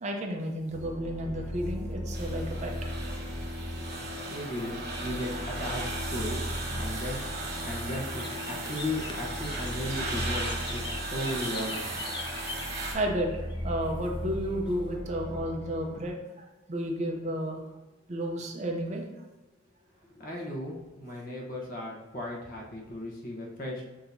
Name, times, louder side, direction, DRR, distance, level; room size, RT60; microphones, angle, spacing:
voice 1, 0.0-2.7 12.9-17.6 18.1-19.1, equal, 35° right, 1 dB, 0.6 m, -32 dB
sound 1, 0.7-16.1, equal, 5° left, 0.7 m, -37 dB
sound 2, 2.1-12.9, right 2 dB, 55° right, 1.1 m, -37 dB
voice 2, 4.3-6.4 6.7-7.2 7.6-11.9 20.1-23.8, left 1 dB, 45° left, -2 dB, 1.0 m, -36 dB
sound 3, 7.4-14.9, left 4 dB, 25° left, 0.3 m, -45 dB
6.2 x 2.8 x 2.7 m, 1.1 s
head